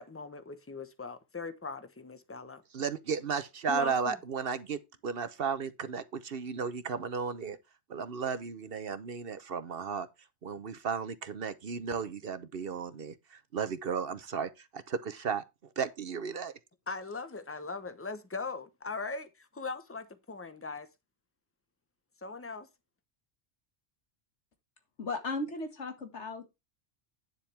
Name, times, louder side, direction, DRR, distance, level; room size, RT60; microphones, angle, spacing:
voice 1, 0.0-2.6 3.7-4.2 16.9-20.9 22.2-22.7, left 4 dB, 15° left, 1.0 m, -40 dB
voice 2, 2.7-7.6 7.9-10.1 10.4-15.4 15.8-16.5, right 6 dB, 55° right, 1.0 m, -34 dB
voice 3, 25.0-26.6, left 2 dB, 80° left, 2.2 m, -36 dB
9.7 x 7.4 x 3.4 m
omnidirectional pair, 1.2 m